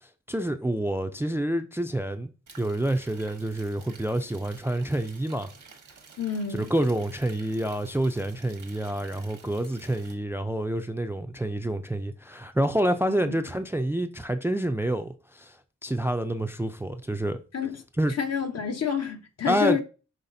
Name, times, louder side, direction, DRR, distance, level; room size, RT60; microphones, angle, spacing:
voice 1, 0.0-2.3 2.6-5.5 6.5-15.6 15.8-17.4 18.0-18.1 19.5-19.8, right 1 dB, 10° right, 0.3 m, -28 dB
sound 1, 2.5-10.1, right 5 dB, 85° right, 1.0 m, -51 dB
voice 2, 6.2-6.7 13.0-13.3 17.5-17.8 18.1-19.8, left 7 dB, 55° left, 0.8 m, -29 dB
5.7 x 3.2 x 2.6 m
cardioid pair, 65°, 30 cm